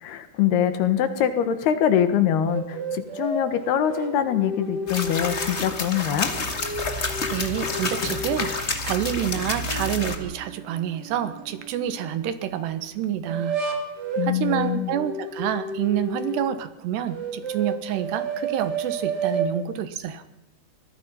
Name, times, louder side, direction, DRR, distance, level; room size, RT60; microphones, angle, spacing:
voice 1, 0.0-6.3 14.2-14.9, left 9 dB, 75° left, 10 dB, 3.3 m, -23 dB
sound 1, 2.5-5.7 6.2-8.5 9.0-12.2 13.2-16.5 17.1-19.5, right 3 dB, 30° right, 2.5 m, -32 dB
sound 2, 4.9-10.2, left 3 dB, 55° left, 0.7 m, -29 dB
voice 2, 7.0-13.6 14.2-20.2, right 10 dB, 80° right, 11 dB, 3.4 m, -28 dB
24.5 x 18.5 x 5.7 m, 0.88 s
omnidirectional pair, 4.9 m